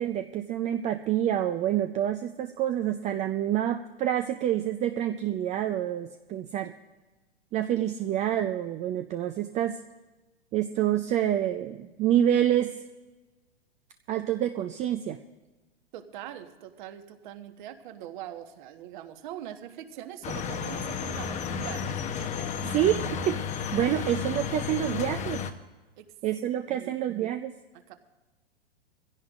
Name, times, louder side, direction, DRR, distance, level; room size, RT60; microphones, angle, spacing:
voice 1, 0.0-6.7 7.5-9.8 10.5-12.8 14.1-15.2 22.6-23.4 23.7-25.4 26.2-27.5, right 11 dB, 25° right, 7 dB, 0.5 m, -27 dB
voice 2, 15.9-22.7 26.0-26.1 26.7-27.0 27.9-28.0, right 11 dB, 50° right, 8 dB, 1.4 m, -42 dB
sound 1, 20.2-25.5, left 6 dB, 25° left, 0.9 m, -32 dB
23.0 x 16.0 x 2.5 m, 1.2 s
hypercardioid pair, 110°, 30 cm